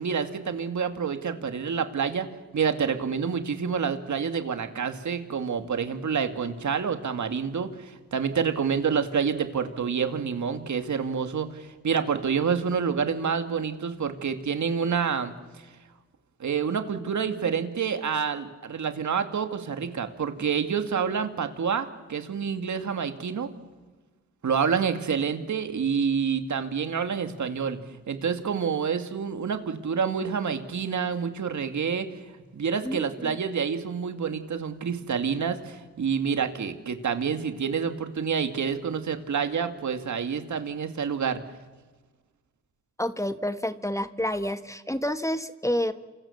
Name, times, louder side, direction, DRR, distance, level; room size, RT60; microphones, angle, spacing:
voice 1, 0.0-2.3 2.5-15.7 16.4-23.5 24.4-32.1 32.5-41.4, right 6 dB, 65° right, 8 dB, 2.4 m, -28 dB
voice 2, 32.8-33.3 43.0-45.9, left 1 dB, 10° left, 10 dB, 1.5 m, -29 dB
28.0 x 26.0 x 7.3 m, 1.3 s
cardioid pair, 55°, 31 cm